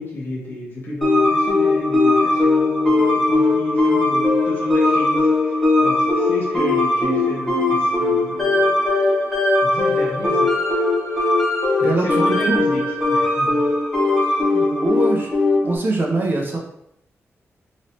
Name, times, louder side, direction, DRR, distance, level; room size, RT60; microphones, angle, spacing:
voice 1, 0.0-8.8 9.3-10.6 11.4-11.5 11.8-12.8 13.1-13.6 14.2-14.4, left 1 dB, 40° left, -5 dB, 1.1 m, -32 dB
sound 1, 1.0-15.8, left 2 dB, 5° left, 1.0 m, -19 dB
voice 2, 11.8-12.6 14.4-15.3 15.6-16.6, right 2 dB, 40° right, -1 dB, 0.6 m, -23 dB
3.1 x 3.0 x 2.7 m, 0.78 s
wide cardioid pair, 130°, 5 cm